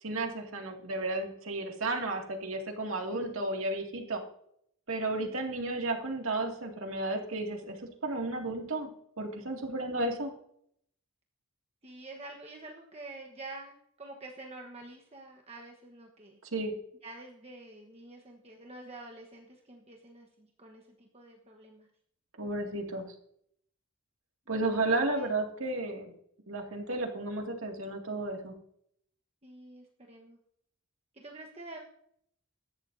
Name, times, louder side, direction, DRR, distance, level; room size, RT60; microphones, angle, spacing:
voice 1, 0.0-4.2 4.9-7.8 8.0-8.9 9.2-10.3 16.5-16.7 22.4-23.1 24.5-26.1 26.5-28.5, right 2 dB, 75° right, 2 dB, 2.3 m, -33 dB
voice 2, 5.2-5.5 11.8-16.4 17.0-21.9 24.7-25.3 29.4-30.4 31.1-31.8, right 2 dB, 30° right, 1 dB, 1.2 m, -48 dB
18.0 x 13.5 x 2.7 m, 0.71 s
head